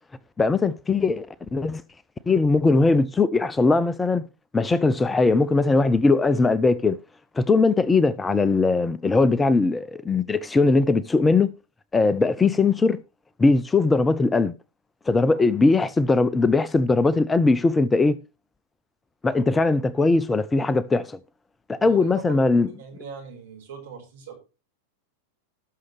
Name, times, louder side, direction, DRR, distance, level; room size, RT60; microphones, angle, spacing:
voice 1, 0.4-1.3 1.5-1.8 2.3-4.2 4.5-7.0 7.4-11.5 11.9-13.0 13.4-14.5 15.1-18.2 19.2-21.2 21.7-22.7, left 3 dB, 10° left, 0.5 m, -20 dB
voice 2, 21.8-24.4, right 5 dB, 60° right, 4.8 m, -41 dB
18.5 x 6.4 x 3.3 m
figure-of-eight pair, 90°, 0 cm